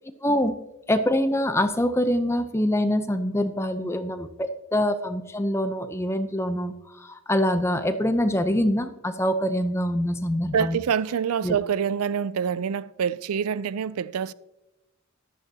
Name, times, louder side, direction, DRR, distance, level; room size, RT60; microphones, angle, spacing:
voice 1, 0.2-0.6 0.9-10.8 11.4-11.6, equal, 10° left, 0.6 m, -25 dB
voice 2, 10.5-14.3, right 7 dB, 85° right, 0.4 m, -26 dB
13.5 x 11.5 x 2.8 m
head